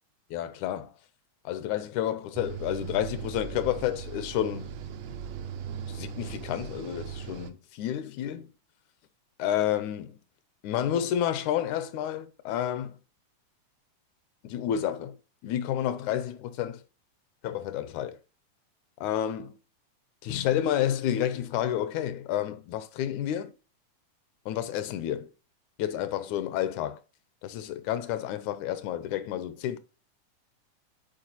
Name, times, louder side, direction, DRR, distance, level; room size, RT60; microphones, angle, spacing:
voice 1, 0.3-0.9 1.5-4.7 5.9-8.5 9.4-10.2 10.6-13.0 14.4-15.2 15.4-16.8 17.4-18.2 19.0-19.6 20.2-23.5 24.5-25.3 25.8-27.0 27.4-29.8, left 11 dB, 80° left, 1.9 m, -30 dB
sound 1, 2.3-7.5, right 7 dB, 75° right, 1.6 m, -38 dB
8.9 x 4.4 x 2.8 m
omnidirectional pair, 3.6 m